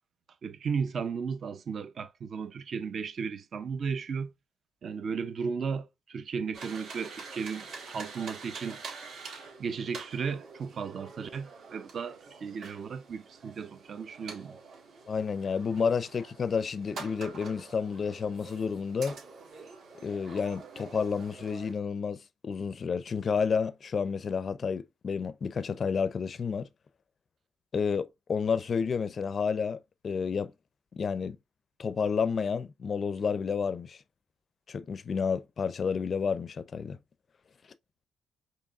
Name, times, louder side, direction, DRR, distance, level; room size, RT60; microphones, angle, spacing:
voice 1, 0.4-4.3 4.8-8.8 9.6-14.6, right 6 dB, 50° right, 0.6 m, -35 dB
sound 1, 6.5-21.7, right 4 dB, 65° right, 1.7 m, -46 dB
voice 2, 15.1-19.2 20.0-26.7 27.7-30.5 30.9-31.4 31.8-34.0 34.7-37.0, left 6 dB, 45° left, 0.4 m, -30 dB
4.7 x 3.1 x 2.4 m
cardioid pair, 90°, 0 cm